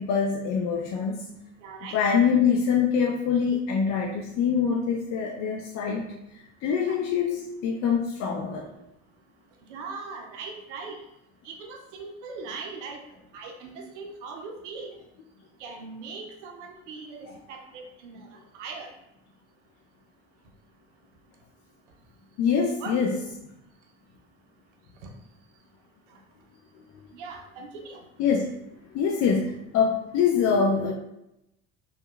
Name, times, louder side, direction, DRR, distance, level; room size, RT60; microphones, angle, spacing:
voice 1, 0.0-1.3 1.9-6.0 6.6-8.7 22.4-23.2 28.2-28.5 28.9-30.9, left 6 dB, 50° left, 1 dB, 0.4 m, -24 dB
voice 2, 1.6-2.0 6.8-7.0 9.7-11.0 11.4-13.0 13.3-14.9 15.6-18.3 18.5-18.9 22.8-23.2 25.0-25.1 27.1-28.0, right 4 dB, 85° right, 3 dB, 0.5 m, -40 dB
2.8 x 2.2 x 2.2 m, 0.85 s
hypercardioid pair, 60°, 34 cm